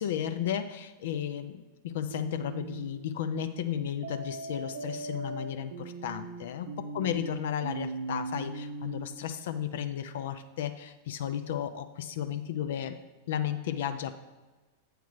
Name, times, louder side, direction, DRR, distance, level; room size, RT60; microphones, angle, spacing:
voice 1, 0.0-13.0 13.3-14.1, left 9 dB, 55° left, 9 dB, 0.4 m, -34 dB
sound 1, 2.1-2.9 4.0-9.1, right 3 dB, 55° right, 0.5 m, -39 dB
8.0 x 4.6 x 4.7 m, 1.2 s
figure-of-eight pair, 90°, 0 cm